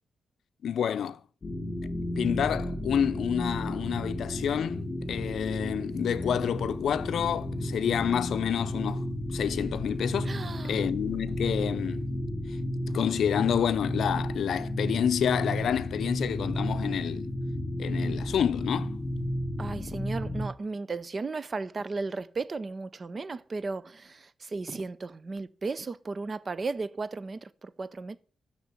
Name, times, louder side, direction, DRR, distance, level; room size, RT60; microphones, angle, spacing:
voice 1, 0.6-1.2 2.1-9.0 9.3-10.3 10.7-12.1 12.9-17.3 17.8-19.0, left 8 dB, 75° left, 0.5 m, -28 dB
sound 1, 1.4-20.5, left 1 dB, 30° left, 1.6 m, -33 dB
voice 2, 10.2-10.8 19.6-28.2, right 3 dB, 30° right, 0.5 m, -35 dB
6.6 x 6.5 x 6.0 m
wide cardioid pair, 150°, 0 cm